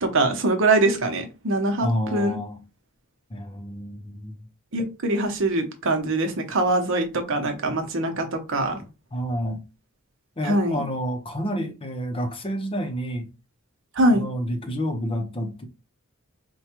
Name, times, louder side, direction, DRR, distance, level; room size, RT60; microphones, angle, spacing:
voice 1, 0.0-2.4 4.7-8.8 10.4-10.9 14.0-14.2, right 2 dB, 65° right, 0.8 m, -23 dB
voice 2, 1.8-2.6 3.3-4.4 9.1-9.6 10.4-13.3 14.1-15.6, equal, 25° left, 0.6 m, -29 dB
4.6 x 2.2 x 2.9 m
head